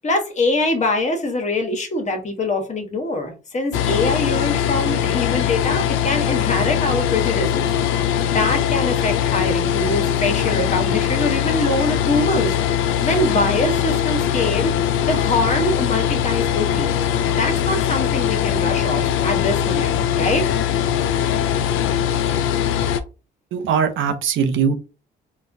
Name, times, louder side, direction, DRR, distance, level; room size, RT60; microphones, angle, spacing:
voice 1, 0.0-7.7 8.2-12.5 13.0-16.9 17.2-20.5, left 2 dB, 35° left, 1.1 m, -23 dB
sound 1, 3.7-23.0, left 10 dB, 90° left, 0.4 m, -21 dB
voice 2, 23.5-24.8, right 7 dB, 80° right, 0.7 m, -20 dB
3.9 x 2.3 x 2.6 m
cardioid pair, 90°, 20 cm